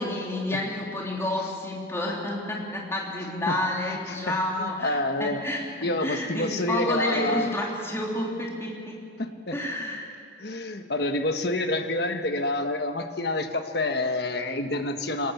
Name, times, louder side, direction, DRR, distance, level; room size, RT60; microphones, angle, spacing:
voice 1, 0.0-9.0 9.5-10.1, left 1 dB, 15° left, -2 dB, 3.3 m, -30 dB
voice 2, 4.6-5.4 5.8-7.5 9.2-9.6 10.4-15.3, left 2 dB, 55° left, 7 dB, 1.5 m, -28 dB
24.5 x 19.5 x 7.3 m, 2.2 s
head